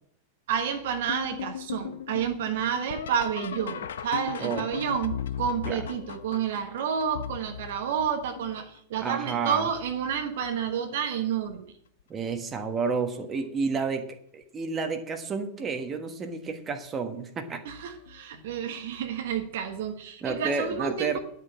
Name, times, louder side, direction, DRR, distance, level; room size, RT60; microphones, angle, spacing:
voice 1, 0.5-11.7 17.6-21.2, right 8 dB, 55° right, 6 dB, 1.3 m, -30 dB
sound 1, 1.1-8.8 9.4-10.0 10.4-11.1 12.3-12.4 13.1-13.5 15.6-15.7 18.1-18.2, left 8 dB, 65° left, 0.6 m, -38 dB
voice 2, 9.0-9.6 12.1-17.6 20.2-21.2, right 4 dB, 25° right, 6 dB, 1.4 m, -30 dB
10.5 x 6.6 x 7.5 m, 0.68 s
figure-of-eight pair, 90°, 0 cm